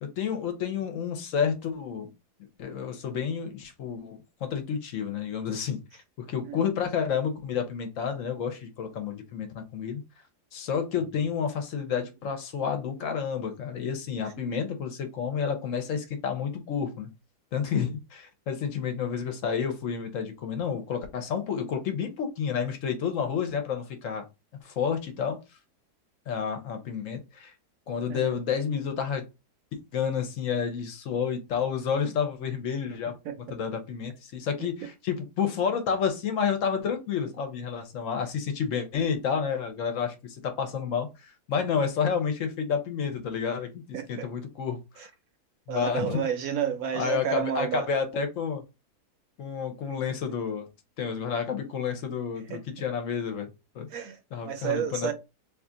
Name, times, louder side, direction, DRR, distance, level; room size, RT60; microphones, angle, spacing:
voice 1, 0.0-2.1 2.4-10.0 10.5-17.1 17.5-24.3 24.6-25.4 26.3-27.5 27.9-29.2 29.9-33.1 33.5-45.1 45.7-46.2 46.9-48.6 49.4-50.7 51.0-53.9 54.3-55.1, left 7 dB, 65° left, 0.9 m, -30 dB
voice 2, 33.2-33.6 34.6-34.7 43.9-44.3 45.0-45.1 45.7-47.9 52.5-52.9 53.9-55.1, right 8 dB, 70° right, 0.9 m, -31 dB
2.7 x 2.4 x 3.7 m
omnidirectional pair, 1.7 m